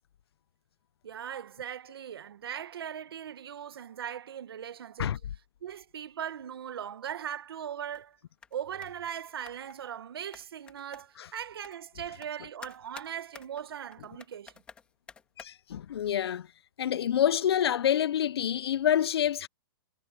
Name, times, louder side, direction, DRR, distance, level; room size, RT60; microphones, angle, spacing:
voice 1, 1.0-5.2 5.6-8.2 8.5-14.5, right 9 dB, 70° right, 1.2 m, -39 dB
sound 1, 7.9-8.1 8.4-8.6 8.8-9.8 10.3-11.3 11.6-11.8 12.2-12.3 12.6-15.5, left 6 dB, 10° left, 1.7 m, -50 dB
voice 2, 15.4-16.5 16.8-19.5, left 10 dB, 85° left, 0.5 m, -27 dB
hypercardioid pair, 175°, 13 cm